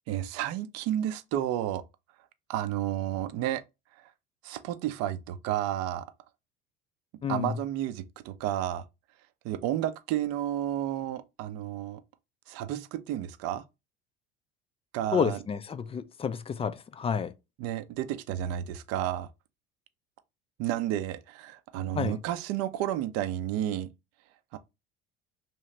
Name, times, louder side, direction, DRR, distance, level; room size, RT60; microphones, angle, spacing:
voice 1, 0.1-1.8 2.5-3.6 4.0-4.1 4.4-6.1 7.3-8.8 9.4-12.0 12.5-13.6 14.9-15.4 17.6-19.3 20.6-23.9 24.5-24.6, right 12 dB, 55° right, 0.5 m, -31 dB
voice 2, 7.2-7.5 15.1-17.3 22.0-22.2, left 6 dB, 20° left, 0.3 m, -30 dB
3.1 x 2.8 x 3.2 m
hypercardioid pair, 70°, 30 cm